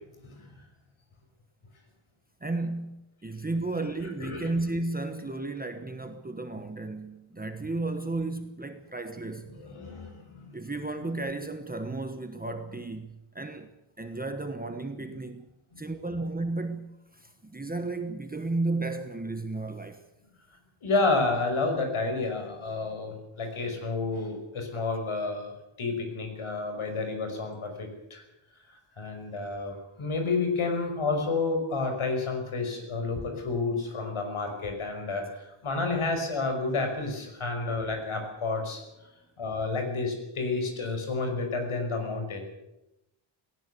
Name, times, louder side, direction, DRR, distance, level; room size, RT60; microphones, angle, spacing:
voice 1, 2.4-9.5 10.5-13.7 14.0-15.5 15.8-20.0, right 2 dB, 20° right, 1.2 m, -33 dB
voice 2, 9.5-10.5 15.7-16.1 20.8-25.5 25.8-28.2 28.6-38.8 39.4-42.5, left 3 dB, 80° left, 5.9 m, -30 dB
18.5 x 18.0 x 8.3 m
wide cardioid pair, 140°, 49 cm